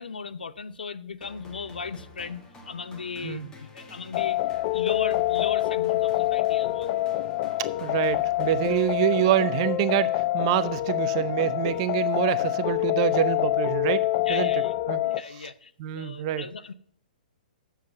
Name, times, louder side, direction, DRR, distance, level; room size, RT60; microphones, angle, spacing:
voice 1, 0.0-4.4 4.7-7.0 11.7-11.8 14.3-14.7 15.0-16.7, left 5 dB, 85° left, 0.7 m, -37 dB
sound 1, 1.2-9.5, left 3 dB, 15° left, 1.8 m, -49 dB
sound 2, 4.1-15.2, left 16 dB, 40° left, 0.4 m, -26 dB
voice 2, 7.8-14.6 14.9-15.0 15.8-16.5, right 13 dB, 40° right, 0.7 m, -26 dB
7.3 x 7.3 x 6.7 m
hypercardioid pair, 135°, 5 cm